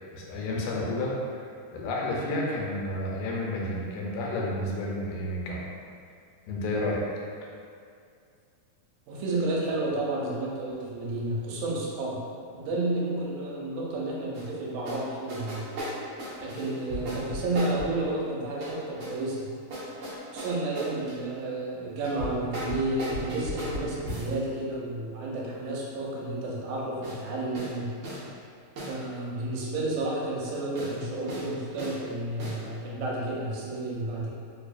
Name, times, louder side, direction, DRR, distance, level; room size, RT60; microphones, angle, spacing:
voice 1, 0.1-1.4 1.7-5.6 6.5-7.1, left 1 dB, 90° left, -3 dB, 2.0 m, -31 dB
voice 2, 9.1-12.2 12.5-15.7 16.4-19.5 20.3-27.9 28.9-34.3, right 2 dB, 85° right, -4 dB, 2.0 m, -31 dB
sound 1, 14.3-14.5 14.9-15.0 15.3-18.0 18.6-19.2 19.7-21.2 22.0-24.4 27.0-27.2 27.5-27.7 28.0-28.2 28.8-29.0 30.7-31.0 31.3-31.5 31.8-32.0 32.4-32.6, equal, 70° right, 1.4 m, -36 dB
4.4 x 2.7 x 2.4 m, 2.3 s
omnidirectional pair, 3.3 m